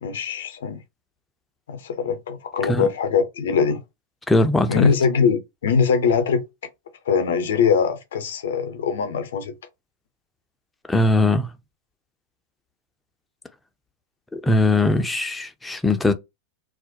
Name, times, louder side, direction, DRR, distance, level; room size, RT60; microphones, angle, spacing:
voice 1, 0.0-0.8 1.7-3.8 4.7-6.4 7.1-9.5, left 6 dB, 60° left, 0.5 m, -22 dB
voice 2, 4.3-4.9 10.9-11.5 14.3-16.1, left 2 dB, 10° left, 0.4 m, -20 dB
2.3 x 2.1 x 2.6 m
figure-of-eight pair, 90°, 0 cm